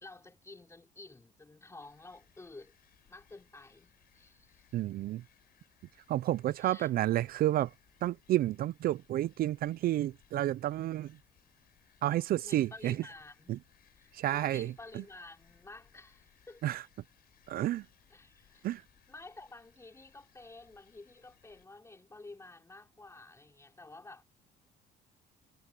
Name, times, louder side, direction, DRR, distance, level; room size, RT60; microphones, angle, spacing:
voice 1, 0.0-2.7 3.1-4.6 6.6-6.9 12.4-13.5 14.0-16.7 18.1-18.7 19.1-24.2, left 2 dB, 15° left, 3.6 m, -51 dB
sound 1, 1.8-21.7, left 11 dB, 60° left, 7.9 m, -67 dB
voice 2, 4.7-5.2 6.1-7.7 8.0-11.2 12.0-13.0 13.5-13.6 14.1-15.0 16.6-16.8 17.5-17.9 18.6-18.8, right 14 dB, 60° right, 0.5 m, -31 dB
cardioid pair, 110°, 17 cm